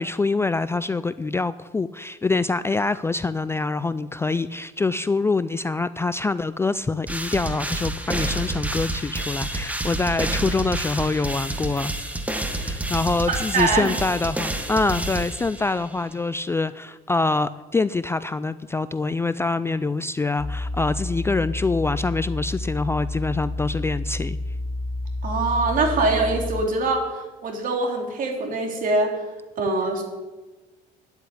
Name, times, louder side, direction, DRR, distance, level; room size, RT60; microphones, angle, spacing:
voice 1, 0.0-11.9 12.5-24.4, left 3 dB, 15° left, 15 dB, 0.3 m, -25 dB
sound 1, 7.1-15.9, right 1 dB, 10° right, 1.3 m, -29 dB
voice 2, 13.3-14.0 25.2-29.2 29.6-30.0, right 3 dB, 55° right, 2 dB, 3.1 m, -23 dB
sound 2, 20.4-26.7, left 2 dB, 80° left, 2.1 m, -30 dB
10.0 x 8.2 x 9.7 m, 1.2 s
cardioid pair, 110°, 17 cm